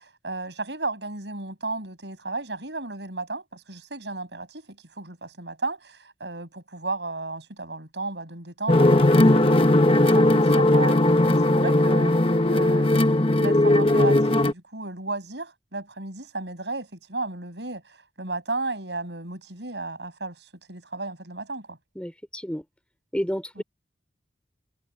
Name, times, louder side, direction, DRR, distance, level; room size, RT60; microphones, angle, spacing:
voice 1, 0.0-9.5 9.9-21.8 23.6-23.7, right 3 dB, 80° right, 6.8 m, -34 dB
sound 1, 8.7-14.5, left 1 dB, 30° left, 1.0 m, -18 dB
voice 2, 22.0-22.6 23.1-23.6, equal, 5° left, 3.4 m, -30 dB
head